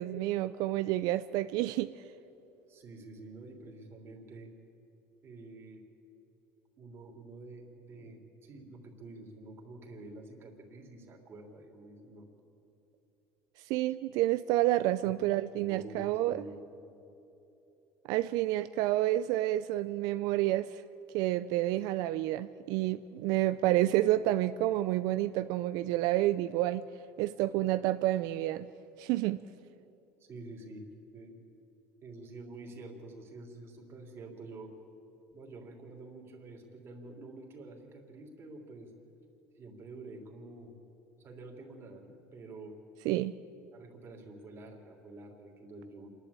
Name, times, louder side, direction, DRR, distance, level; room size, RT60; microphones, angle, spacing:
voice 1, 0.0-1.9 13.7-16.4 18.1-20.8 21.1-26.8 27.2-28.7 29.0-29.4 43.1-43.3, right 15 dB, 65° right, 13 dB, 0.5 m, -29 dB
voice 2, 2.7-4.5 5.2-5.8 6.8-12.3 15.0-15.1 15.6-16.8 30.2-30.9 31.1-31.3 32.0-34.7 35.3-38.9 39.5-40.8 41.1-42.8 43.7-46.1, right 2 dB, 35° right, 1 dB, 3.4 m, -48 dB
27.0 x 11.5 x 8.5 m, 3.0 s
supercardioid pair, 120°, 7 cm